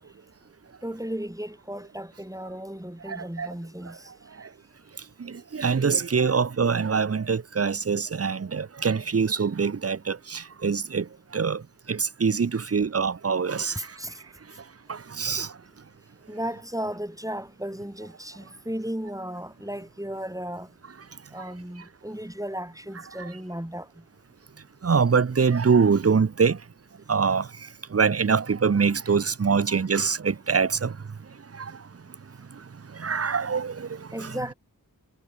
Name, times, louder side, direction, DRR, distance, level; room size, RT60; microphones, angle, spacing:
voice 1, 0.8-4.1 13.8-14.2 15.3-15.4 16.3-20.7 21.3-24.0 34.1-34.5, equal, 10° right, 3.5 m, -35 dB
voice 2, 3.1-3.5 4.4-4.5 5.2-11.6 11.9-14.0 14.9-15.5 23.2-23.3 24.8-26.6 27.1-27.5 27.9-31.0 31.5-31.8 32.9-34.5, right 5 dB, 40° right, 0.7 m, -24 dB
wide cardioid pair, 60°, 37 cm